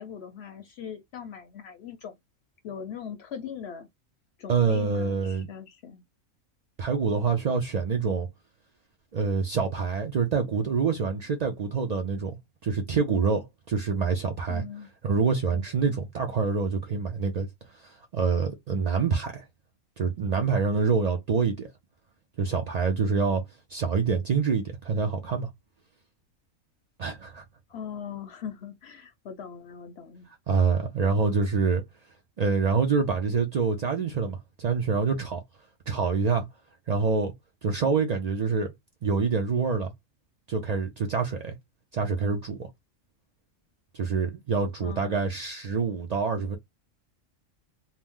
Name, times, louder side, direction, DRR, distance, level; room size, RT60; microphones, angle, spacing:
voice 1, 0.0-2.2 2.6-3.9 4.4-6.0 14.5-14.9 15.7-15.9 27.7-30.3 44.8-45.2, left 8 dB, 65° left, 0.7 m, -40 dB
voice 2, 4.5-5.5 6.8-8.3 9.1-14.6 15.0-17.5 17.8-19.4 20.0-21.7 22.4-23.4 23.7-25.5 27.0-27.4 30.5-31.8 32.4-35.4 35.9-36.5 36.9-37.3 37.6-38.7 39.0-39.9 40.5-41.6 41.9-42.7 43.9-46.6, right 5 dB, 80° right, 0.3 m, -26 dB
2.8 x 2.0 x 3.5 m
omnidirectional pair, 1.4 m